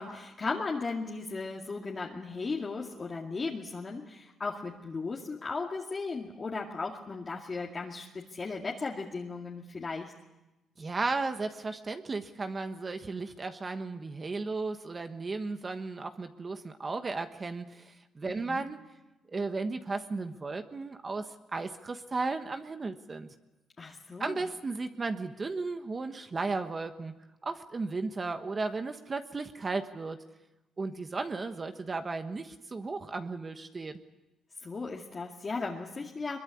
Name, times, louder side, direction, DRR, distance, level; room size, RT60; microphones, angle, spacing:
voice 1, 0.0-10.1 18.2-18.7 23.8-24.5 34.6-36.4, left 4 dB, 35° left, -2 dB, 2.3 m, -36 dB
voice 2, 10.8-18.8 19.3-23.3 24.2-27.2 27.4-30.2 30.8-33.9, right 3 dB, 30° right, 8 dB, 1.3 m, -35 dB
22.5 x 22.0 x 8.5 m, 1.0 s
cardioid pair, 90°, 0 cm